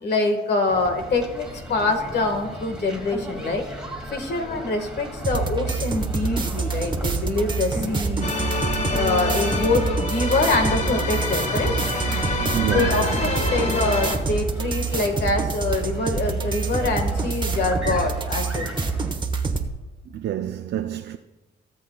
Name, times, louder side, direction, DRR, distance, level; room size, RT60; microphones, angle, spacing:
voice 1, 0.0-3.7 4.1-8.3 8.9-11.8 12.7-18.7, left 3 dB, 55° left, 1.6 m, -25 dB
sound 1, 0.7-19.2, equal, 5° right, 2.3 m, -36 dB
sound 2, 5.2-19.7, right 4 dB, 25° right, 1.1 m, -26 dB
sound 3, 8.2-14.2, left 3 dB, 35° left, 1.4 m, -27 dB
voice 2, 12.1-13.1 20.1-21.2, right 11 dB, 60° right, 0.5 m, -28 dB
17.5 x 7.6 x 2.3 m
cardioid pair, 90°, 20 cm